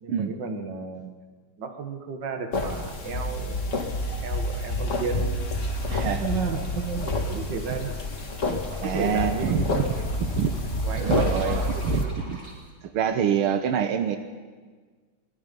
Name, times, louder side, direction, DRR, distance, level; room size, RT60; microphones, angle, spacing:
voice 1, 0.0-1.2 1.6-3.9 4.2-5.3 6.2-7.9 8.4-10.0 10.8-12.1, right 5 dB, 60° right, 6 dB, 2.4 m, -33 dB
sound 1, 2.5-12.0, left 2 dB, 40° left, 2.1 m, -28 dB
sound 2, 5.6-12.5, equal, 25° right, 5.2 m, -41 dB
voice 2, 5.9-6.3 8.8-9.6 10.2-10.6 11.0-12.4 12.8-14.2, right 8 dB, 85° right, 8 dB, 1.9 m, -26 dB
24.0 x 20.5 x 5.4 m, 1.5 s
omnidirectional pair, 2.3 m